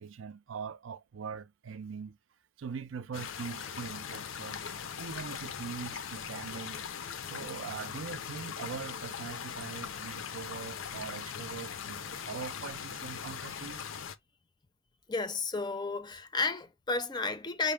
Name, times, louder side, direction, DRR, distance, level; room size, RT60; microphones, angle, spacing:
voice 1, 0.0-2.2 2.6-4.7 5.0-6.8 7.3-13.8, right 6 dB, 75° right, 0.4 m, -42 dB
sound 1, 3.1-14.1, left 7 dB, 75° left, 0.5 m, -40 dB
voice 2, 15.1-17.7, left 3 dB, 20° left, 0.5 m, -32 dB
5.1 x 2.1 x 3.3 m
head